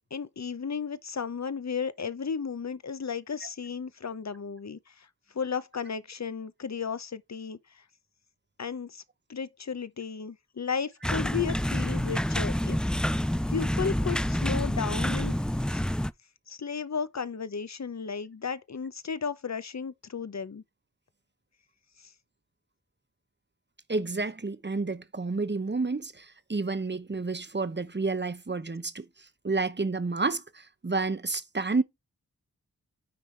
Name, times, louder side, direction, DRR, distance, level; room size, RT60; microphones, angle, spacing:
voice 1, 0.1-5.1 5.3-7.8 8.6-9.0 9.3-15.3 15.7-15.8 16.5-20.6 22.0-22.1, left 6 dB, 50° left, 0.8 m, -34 dB
sound 1, 11.0-16.1, equal, ahead, 0.3 m, -28 dB
voice 2, 23.9-29.0 29.4-31.8, right 3 dB, 30° right, 0.9 m, -30 dB
9.6 x 3.4 x 4.5 m
wide cardioid pair, 45°, 36 cm